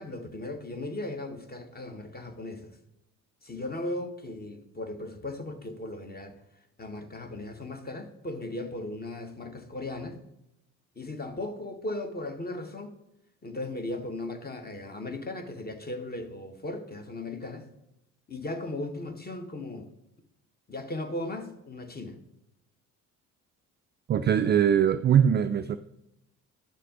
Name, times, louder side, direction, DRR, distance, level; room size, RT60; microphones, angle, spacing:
voice 1, 0.0-2.8 3.4-6.4 6.8-10.2 10.9-12.9 13.4-17.7 18.3-19.9 20.7-22.2, left 2 dB, 20° left, 7 dB, 1.4 m, -37 dB
voice 2, 24.1-25.8, right 8 dB, 25° right, 10 dB, 0.3 m, -22 dB
11.5 x 6.5 x 3.8 m, 0.87 s
hypercardioid pair, 55°, 43 cm